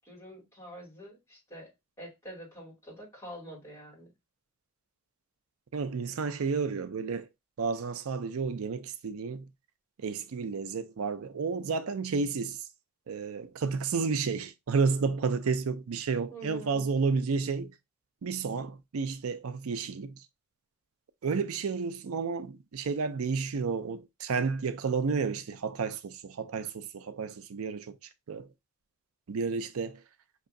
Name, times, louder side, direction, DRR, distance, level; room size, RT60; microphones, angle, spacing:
voice 1, 0.0-1.7 2.0-4.1 16.3-16.9, equal, 15° left, 2.6 m, -46 dB
voice 2, 5.7-7.3 7.6-9.5 10.0-12.6 13.1-17.7 18.2-20.3 21.2-28.0 28.3-28.5 29.3-30.0, right 5 dB, 80° right, 0.5 m, -31 dB
5.5 x 3.0 x 2.5 m
head